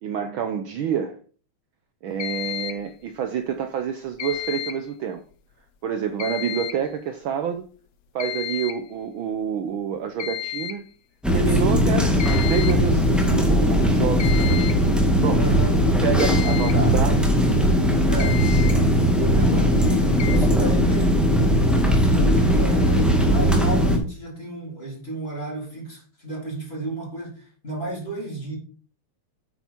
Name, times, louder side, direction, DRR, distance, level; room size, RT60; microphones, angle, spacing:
voice 1, 0.0-1.2 2.0-5.2 5.8-7.6 8.1-10.8 11.3-12.1 12.5-14.6 15.2-15.4 16.0-17.2, right 8 dB, 80° right, 1.1 m, -27 dB
sound 1, 2.2-2.9 4.2-4.9 6.2-6.9 8.2-8.9 10.2-10.9 12.2-12.9 14.2-14.9 16.2-16.8 17.9-18.0 18.2-18.8 20.2-20.4, left 11 dB, 65° left, 1.8 m, -32 dB
sound 2, 11.2-24.0, equal, ahead, 1.3 m, -19 dB
voice 2, 11.5-11.9 15.3-15.8 16.7-17.0 18.1-21.5 21.9-28.6, right 1 dB, 20° left, 3.9 m, -32 dB
9.2 x 7.2 x 4.4 m
omnidirectional pair, 3.3 m